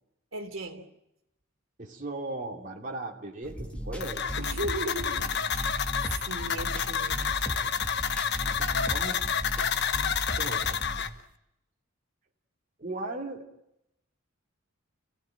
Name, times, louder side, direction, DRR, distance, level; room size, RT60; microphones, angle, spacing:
voice 1, 0.3-0.8 4.4-5.8 6.1-7.7, right 1 dB, 70° right, 4 dB, 3.4 m, -37 dB
voice 2, 1.8-4.2 8.5-9.2 10.4-10.8 12.8-13.4, right 2 dB, 40° right, 0 dB, 2.9 m, -37 dB
sound 1, 3.4-11.1, equal, 5° left, 2.7 m, -37 dB
sound 2, 4.0-11.1, left 7 dB, 55° left, 1.1 m, -29 dB
29.5 x 17.0 x 9.0 m, 0.85 s
head